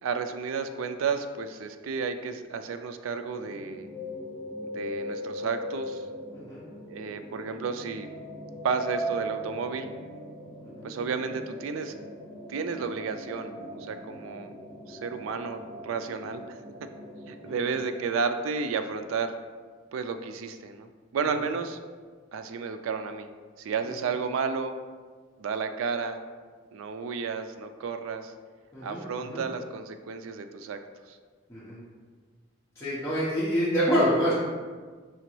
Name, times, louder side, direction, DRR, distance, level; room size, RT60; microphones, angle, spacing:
voice 1, 0.0-3.9 4.6-6.0 6.9-8.1 8.6-9.9 10.8-11.9 12.5-14.5 14.9-16.6 17.3-19.3 19.9-21.8 22.3-23.3 23.6-24.8 25.4-26.2 26.7-28.3 28.8-30.8 31.1-31.2, right 5 dB, 75° right, 8 dB, 0.3 m, -32 dB
sound 1, 3.3-18.0, equal, 30° right, 1.1 m, -40 dB
voice 2, 6.3-6.6 10.6-10.9 17.4-17.7 23.8-23.9 28.7-29.4 31.5-31.8 32.8-34.3, equal, 15° left, -11 dB, 0.8 m, -27 dB
4.8 x 2.9 x 3.0 m, 1.5 s
head